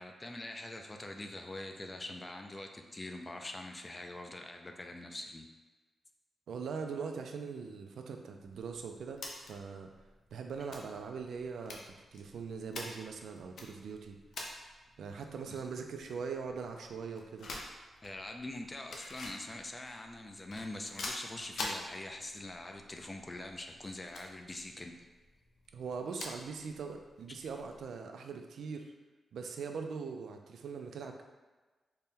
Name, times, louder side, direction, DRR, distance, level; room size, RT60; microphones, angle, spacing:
voice 1, 0.0-5.5 15.5-15.6 18.0-25.0, left 1 dB, 20° left, 4 dB, 0.3 m, -44 dB
voice 2, 6.5-9.9 10.3-14.2 15.0-17.5 25.7-28.9 29.3-31.2, right 5 dB, 80° right, 4 dB, 0.3 m, -41 dB
sound 1, 8.4-28.0, left 2 dB, 70° left, 0.5 m, -48 dB
4.1 x 2.1 x 3.6 m, 1.3 s
wide cardioid pair, 145°, 0 cm